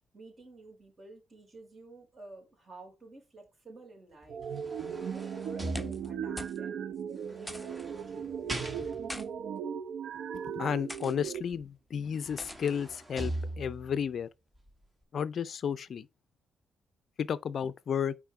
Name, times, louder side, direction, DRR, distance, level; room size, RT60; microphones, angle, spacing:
voice 1, 0.1-4.5 5.1-8.3, right 2 dB, 35° right, 4.2 m, -52 dB
sound 1, 4.2-6.4 7.3-9.3 11.5-11.6 12.0-14.0 14.6-14.7, right 1 dB, 20° right, 1.7 m, -41 dB
sound 2, 4.3-11.4, right 7 dB, 70° right, 0.5 m, -37 dB
sound 3, 5.6-6.1 6.4-6.6 6.9-7.0 7.5-7.9 8.8-9.3 10.0-10.3 10.9-11.1 12.4-12.7, left 1 dB, 5° left, 0.9 m, -43 dB
voice 2, 10.3-14.3 15.1-16.1 17.2-18.1, left 7 dB, 55° left, 0.4 m, -33 dB
5.6 x 4.6 x 4.7 m
cardioid pair, 90°, 0 cm